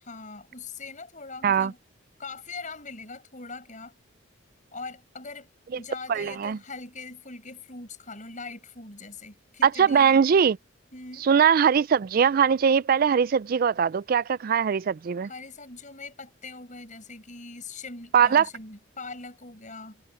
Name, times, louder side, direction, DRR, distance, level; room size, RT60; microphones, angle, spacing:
voice 1, 0.1-1.8 2.2-3.9 4.7-5.5 5.7-10.2 10.9-11.3 15.2-20.0, left 3 dB, 40° left, 7.8 m, -41 dB
voice 2, 6.1-6.6 9.6-10.6 11.2-15.3 18.1-18.5, right 7 dB, 45° right, 0.3 m, -21 dB
head